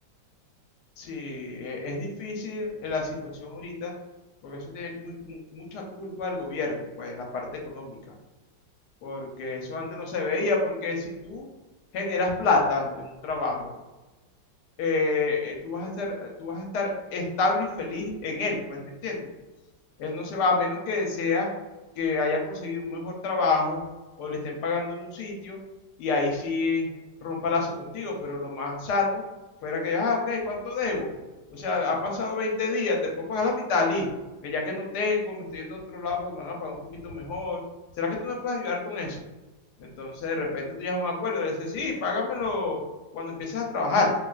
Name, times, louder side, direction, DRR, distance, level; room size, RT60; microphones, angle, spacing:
voice 1, 1.0-3.9 4.4-8.0 9.0-11.5 11.9-13.7 14.8-19.3 20.0-21.5 21.9-23.8 24.2-25.6 26.0-26.9 27.2-29.2 29.6-31.1 31.5-34.1 34.4-37.6 38.0-39.2 39.8-42.8 43.1-44.1, left 3 dB, 70° left, 0 dB, 1.1 m, -28 dB
4.1 x 2.3 x 2.3 m, 1.1 s
omnidirectional pair, 2.0 m